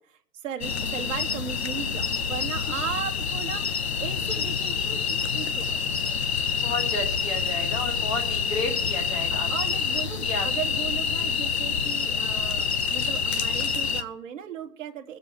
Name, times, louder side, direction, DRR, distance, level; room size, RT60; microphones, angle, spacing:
voice 1, 0.4-5.8 9.3-15.2, right 8 dB, 50° right, 3 dB, 1.2 m, -36 dB
sound 1, 0.6-14.0, left 6 dB, 45° left, 0.4 m, -27 dB
voice 2, 6.5-9.5 10.2-10.5 11.2-11.4, left 2 dB, 20° left, 4 dB, 1.3 m, -32 dB
20.5 x 6.9 x 4.6 m, 0.63 s
hypercardioid pair, 160°, 48 cm